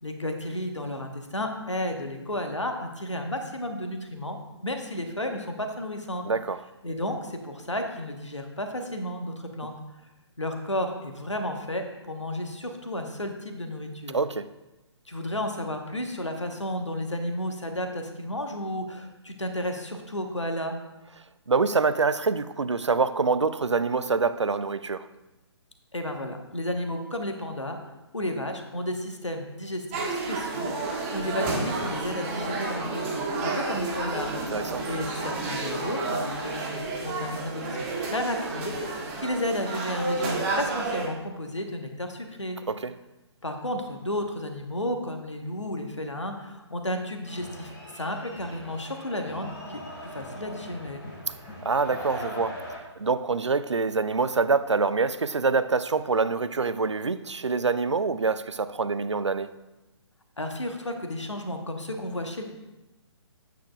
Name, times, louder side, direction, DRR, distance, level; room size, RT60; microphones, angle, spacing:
voice 1, 0.0-4.4 4.6-6.3 6.8-9.7 10.4-14.2 15.1-20.8 25.9-27.8 28.1-34.3 34.9-42.6 43.4-51.0 60.4-62.4, left 1 dB, 85° left, 1.2 m, -32 dB
voice 2, 6.3-6.6 14.1-14.5 21.5-25.1 34.3-34.9 42.7-42.9 51.4-59.5, right 4 dB, 80° right, 0.5 m, -26 dB
sound 1, 29.9-41.1, right 3 dB, 25° right, 1.4 m, -31 dB
sound 2, 47.2-52.8, left 1 dB, 45° left, 2.6 m, -41 dB
9.2 x 8.5 x 2.4 m
figure-of-eight pair, 135°, 15 cm